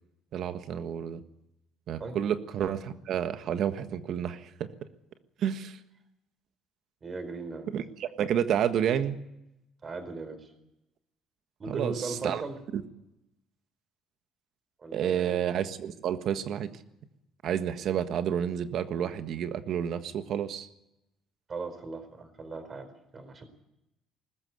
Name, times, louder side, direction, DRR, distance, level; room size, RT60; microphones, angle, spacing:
voice 1, 0.3-1.2 1.9-4.7 5.4-5.8 7.7-9.2 11.7-12.4 12.7-12.8 14.9-16.7 17.4-20.7, right 9 dB, 60° right, 10 dB, 1.5 m, -30 dB
voice 2, 7.0-7.7 9.8-10.5 11.6-12.6 14.8-15.4 21.5-23.4, right 3 dB, 30° right, 9 dB, 4.4 m, -38 dB
20.0 x 14.5 x 9.6 m, 0.87 s
cardioid pair, 115°, 0 cm